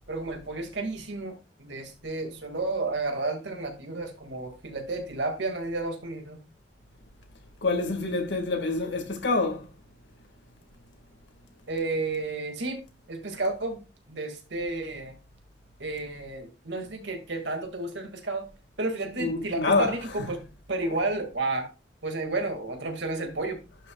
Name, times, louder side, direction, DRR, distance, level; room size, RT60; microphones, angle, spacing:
voice 1, 0.1-6.4 11.7-12.8 13.1-13.8 14.1-15.2 15.8-18.5 18.8-20.4 20.7-21.7 22.0-23.6, right 2 dB, 80° right, 2.1 m, -31 dB
voice 2, 7.6-9.7 19.2-19.9, left 3 dB, 85° left, 1.9 m, -26 dB
11.0 x 6.2 x 2.4 m
head